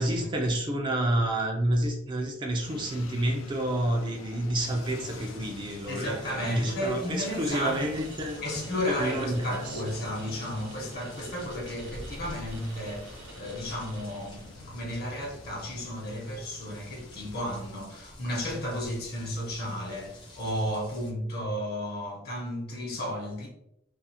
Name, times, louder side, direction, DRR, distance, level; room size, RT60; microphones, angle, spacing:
voice 1, 0.0-8.4 8.9-9.8, right 1 dB, 25° right, 0.3 m, -29 dB
sound 1, 2.6-17.7, left 3 dB, 70° left, 0.3 m, -48 dB
sound 2, 4.6-21.1, left 1 dB, 20° left, 0.6 m, -48 dB
voice 2, 5.9-7.8 8.4-23.5, left 1 dB, 50° left, 0.8 m, -33 dB
sound 3, 7.5-14.8, right 2 dB, 75° right, 0.7 m, -48 dB
2.4 x 2.4 x 2.7 m
head